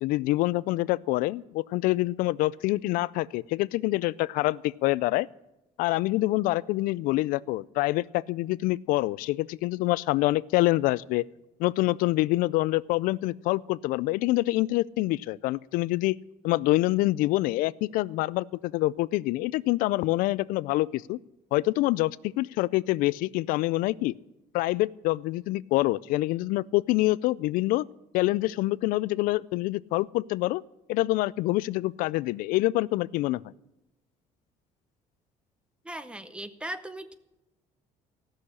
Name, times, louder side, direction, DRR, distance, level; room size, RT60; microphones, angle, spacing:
voice 1, 0.0-5.3 5.8-11.2 11.6-16.2 16.4-21.2 21.5-24.1 24.5-27.9 28.1-30.6 30.9-33.4, left 18 dB, 85° left, 19 dB, 0.4 m, -26 dB
voice 2, 35.8-37.2, right 1 dB, 5° right, 13 dB, 0.7 m, -38 dB
15.5 x 6.5 x 9.7 m, 0.91 s
cardioid pair, 160°, 14 cm